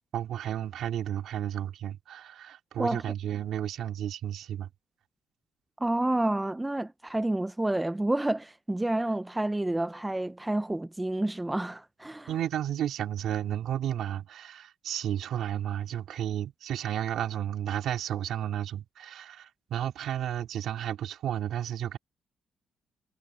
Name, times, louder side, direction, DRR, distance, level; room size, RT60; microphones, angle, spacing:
voice 1, 0.0-4.7 12.3-22.0, right 10 dB, 75° right, 3.8 m, -32 dB
voice 2, 5.8-12.3, right 1 dB, 10° right, 0.7 m, -29 dB
cardioid pair, 90°, 0 cm